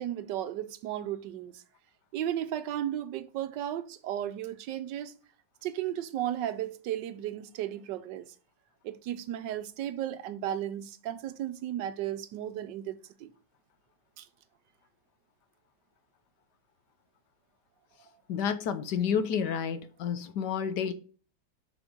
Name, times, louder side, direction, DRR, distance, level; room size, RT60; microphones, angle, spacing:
voice 1, 0.0-1.6 2.1-5.2 5.6-8.2 8.8-13.3 14.2-14.3, right 11 dB, 80° right, 1.3 m, -34 dB
voice 2, 18.3-20.9, left 7 dB, 70° left, 1.3 m, -30 dB
6.3 x 5.9 x 3.6 m
omnidirectional pair, 2.0 m